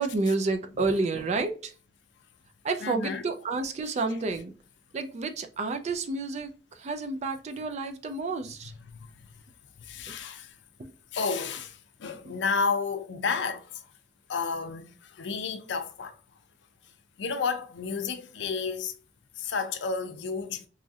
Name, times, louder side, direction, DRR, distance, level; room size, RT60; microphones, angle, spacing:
voice 1, 0.0-1.7 2.6-4.5 4.9-8.7 10.1-10.2 10.8-10.9 12.2-12.4, right 3 dB, 40° right, 0.4 m, -30 dB
voice 2, 2.8-3.2 8.9-9.1 9.8-10.5 11.1-13.8 14.3-16.2 17.2-18.9 19.4-20.6, left 5 dB, 80° left, 0.5 m, -31 dB
3.0 x 2.4 x 2.6 m
head